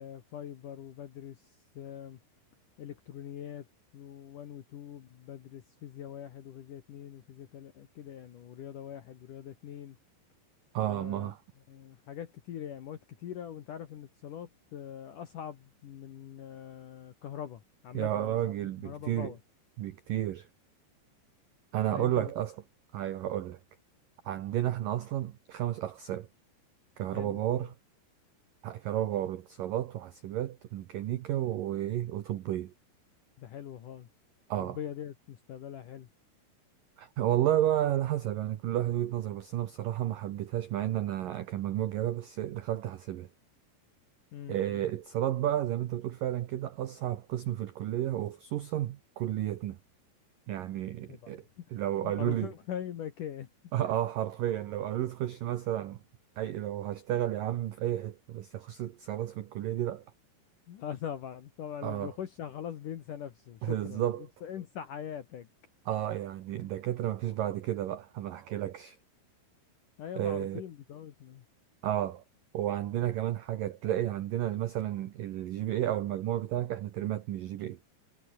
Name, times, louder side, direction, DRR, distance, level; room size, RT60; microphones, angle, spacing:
voice 1, 0.0-2.2 2.8-3.7 3.9-10.0 10.8-11.3 11.7-19.4 21.9-22.3 27.1-27.7 33.4-34.1 34.6-36.1 44.3-44.9 51.1-53.5 53.8-53.9 60.7-65.5 70.0-71.5, left 9 dB, 65° left, 2.1 m, -42 dB
voice 2, 10.7-11.4 17.9-19.3 19.8-20.5 21.7-22.5 22.9-23.6 24.3-26.3 27.0-27.7 28.6-32.7 34.5-34.8 37.0-43.3 44.5-49.8 50.5-51.4 51.7-52.5 53.7-56.0 56.4-60.0 61.8-62.1 63.6-64.3 65.9-69.0 70.2-70.6 71.8-72.2 72.5-77.8, right 12 dB, 80° right, 1.9 m, -32 dB
omnidirectional pair, 5.7 m